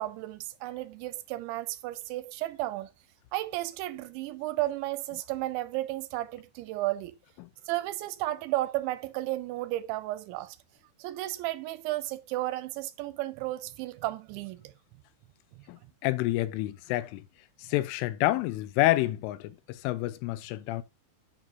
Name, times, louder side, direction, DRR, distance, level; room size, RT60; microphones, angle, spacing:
voice 1, 0.0-2.9 3.3-7.2 7.7-10.6 11.0-14.7, right 16 dB, 80° right, 2.8 m, -33 dB
voice 2, 15.7-17.2 17.6-20.8, left 16 dB, 90° left, 3.3 m, -28 dB
10.0 x 9.1 x 2.7 m
omnidirectional pair, 5.6 m